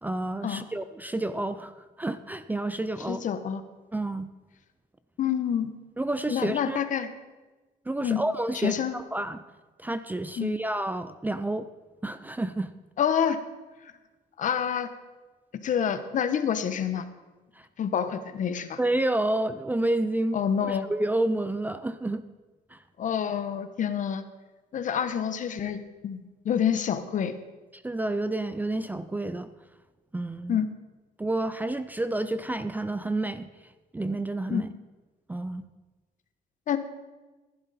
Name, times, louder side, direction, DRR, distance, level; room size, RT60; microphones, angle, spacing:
voice 1, 0.0-3.2 3.9-4.3 6.0-6.8 7.9-9.4 9.8-11.7 12.0-12.7 17.5-17.7 18.8-22.2 22.7-22.8 27.7-29.5 30.1-30.6 31.2-33.5 33.9-34.7 35.3-35.7, right 2 dB, 10° right, 12 dB, 0.5 m, -29 dB
voice 2, 3.1-3.6 5.2-5.7 6.3-7.1 8.0-8.2 8.6-8.9 10.4-10.5 13.0-13.4 14.4-14.9 15.6-17.0 17.8-18.8 20.3-20.9 23.0-24.2 24.7-27.4 30.5-30.7 34.5-34.6 36.7-36.8, left 8 dB, 50° left, 10 dB, 1.1 m, -27 dB
15.0 x 11.0 x 4.2 m, 1.2 s
cardioid pair, 110°, 17 cm